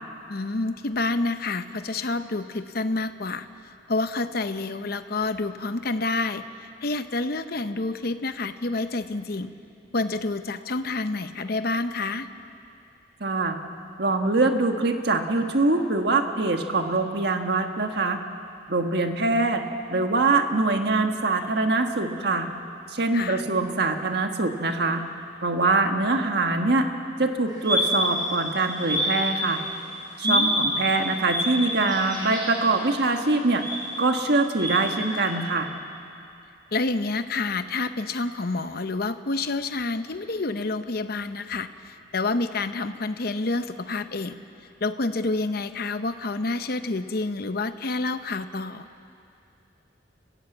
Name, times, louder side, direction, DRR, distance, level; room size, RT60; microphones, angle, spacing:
voice 1, 0.3-3.5 3.9-6.4 6.8-9.5 9.9-12.3 23.1-23.4 30.2-30.7 36.7-44.4 44.8-48.9, left 3 dB, 50° left, 10 dB, 0.8 m, -28 dB
voice 2, 13.2-13.6 14.0-18.2 18.7-19.6 19.9-22.5 22.9-25.0 25.4-26.9 27.2-29.6 30.2-33.6 34.0-35.7, right 3 dB, 60° right, 5 dB, 1.6 m, -23 dB
sound 1, 27.5-29.8 30.2-35.3, equal, 20° right, 6.3 m, -28 dB
30.0 x 15.5 x 8.1 m, 2.6 s
head